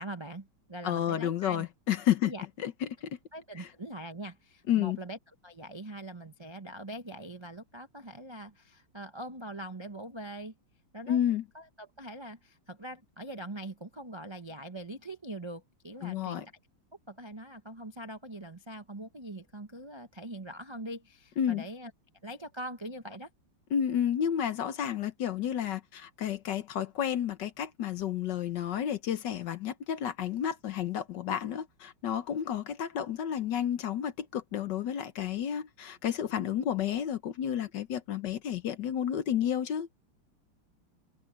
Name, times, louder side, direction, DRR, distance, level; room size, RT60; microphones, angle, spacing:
voice 1, 0.0-1.7 2.2-2.5 3.3-5.2 5.4-10.5 10.9-11.2 11.5-16.4 17.1-21.9 22.2-23.3, right 1 dB, 25° right, 0.5 m, -42 dB
voice 2, 0.8-2.3 2.6-3.2 3.6-3.7 4.7-5.0 11.1-11.4 16.0-16.5 21.4-21.6 23.7-39.9, left 9 dB, 60° left, 1.4 m, -31 dB
omnidirectional pair, 2.3 m